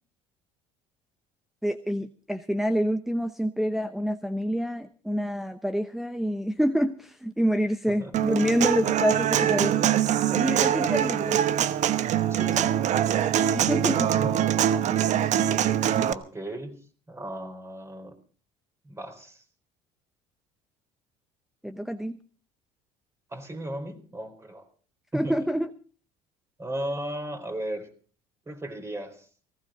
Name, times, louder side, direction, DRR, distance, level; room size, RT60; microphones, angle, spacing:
voice 1, 1.6-9.9 10.3-11.4 13.5-14.1 21.6-22.2 25.1-25.7, equal, ahead, 9 dB, 0.8 m, -27 dB
voice 2, 7.9-8.2 12.3-12.8 14.2-14.4 16.1-16.8 17.1-18.1 18.8-19.4 23.3-24.7 25.1-25.4 26.6-27.9 28.5-29.3, right 1 dB, 20° right, 6 dB, 4.1 m, -36 dB
Human voice / Acoustic guitar, 8.1-16.1, right 10 dB, 55° right, 1.0 m, -23 dB
19.0 x 16.0 x 3.8 m, 0.40 s
supercardioid pair, 80°, 15 cm